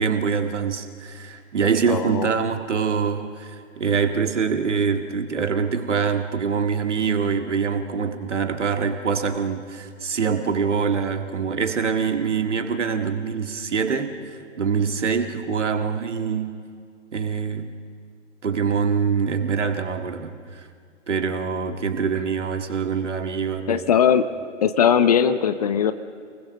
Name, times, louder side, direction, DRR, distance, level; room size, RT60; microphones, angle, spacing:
voice 1, 0.0-16.6 17.1-17.7 18.4-20.7 21.1-23.8, right 6 dB, 65° right, 6 dB, 2.0 m, -24 dB
voice 2, 1.9-2.3 23.7-24.3 24.6-25.9, left 8 dB, 30° left, 12 dB, 0.7 m, -19 dB
28.5 x 20.5 x 6.6 m, 2.1 s
figure-of-eight pair, 130°, 39 cm